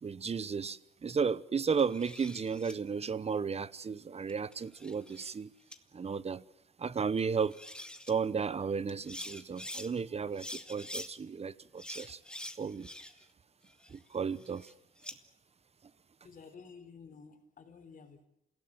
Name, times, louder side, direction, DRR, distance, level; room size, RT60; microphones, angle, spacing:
voice 1, 0.0-5.5 5.9-6.4 6.8-7.5 8.1-12.2 12.6-12.9 13.9-14.7, right 6 dB, 30° right, 1.0 m, -34 dB
sound 1, 1.7-2.7 4.3-5.4 5.7-5.8 7.2-7.3 7.5-8.1 8.9-9.9 10.4-11.1 11.8-13.3 13.7-15.2, left 1 dB, 5° left, 2.0 m, -45 dB
voice 2, 16.2-18.3, left 5 dB, 45° left, 4.1 m, -52 dB
27.0 x 17.0 x 8.9 m
cardioid pair, 90°, 20 cm